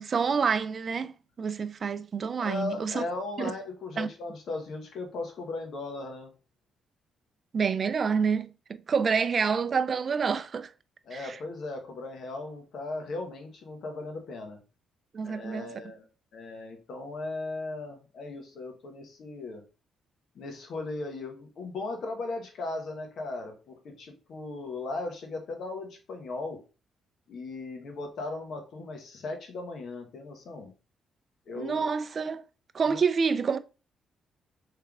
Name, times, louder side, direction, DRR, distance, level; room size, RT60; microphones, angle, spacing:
voice 1, 0.0-3.0 3.4-3.5 4.0-4.1 7.5-10.7 11.1-11.4 15.1-15.7 31.6-32.4 32.7-33.6, right 5 dB, 45° right, 0.4 m, -28 dB
voice 2, 2.4-6.3 11.1-14.6 15.2-16.1 16.3-19.6 20.3-26.6 27.3-30.7 31.5-31.9 32.9-33.0, left 3 dB, 65° left, 1.3 m, -37 dB
3.4 x 3.3 x 3.6 m
cardioid pair, 90°, 0 cm